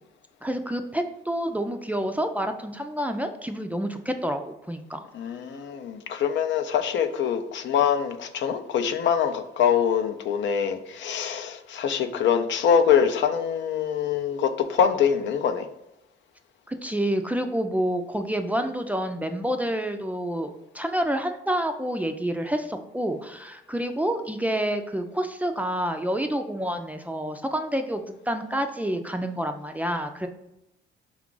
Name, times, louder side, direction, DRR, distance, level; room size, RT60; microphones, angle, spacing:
voice 1, 0.4-5.1 16.7-30.3, right 1 dB, 5° right, 0.4 m, -28 dB
voice 2, 5.1-15.7, left 8 dB, 65° left, 0.5 m, -24 dB
4.6 x 2.4 x 3.7 m
cardioid pair, 90°, 20 cm